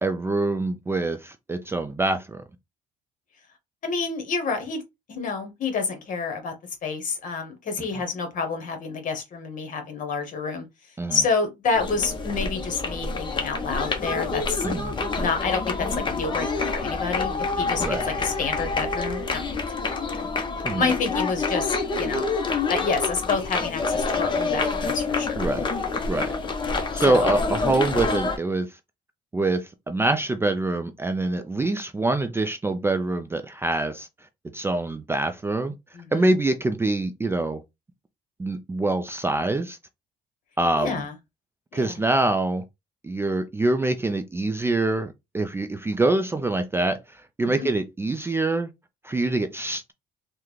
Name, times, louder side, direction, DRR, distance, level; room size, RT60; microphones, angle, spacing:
voice 1, 0.0-2.4 7.8-8.0 11.0-11.2 14.6-15.0 17.8-18.1 20.6-20.9 25.4-25.7 26.1-26.3 26.9-28.8 29.3-34.1 34.5-35.7 36.1-37.6 38.4-39.8 40.6-41.0 41.7-42.6 43.0-48.7 49.0-49.9, right 2 dB, 15° right, 0.3 m, -25 dB
voice 2, 3.8-4.8 5.1-6.5 6.8-10.6 11.1-14.6 15.1-19.5 19.9-20.3 20.8-22.3 22.7-25.4 27.0-27.3 35.9-36.3 40.8-41.1 41.7-42.0 47.5-47.7, left 4 dB, 50° left, 1.2 m, -28 dB
sound 1, 11.7-28.4, left 4 dB, 30° left, 0.8 m, -27 dB
3.6 x 2.2 x 3.1 m
cardioid pair, 110°, 17 cm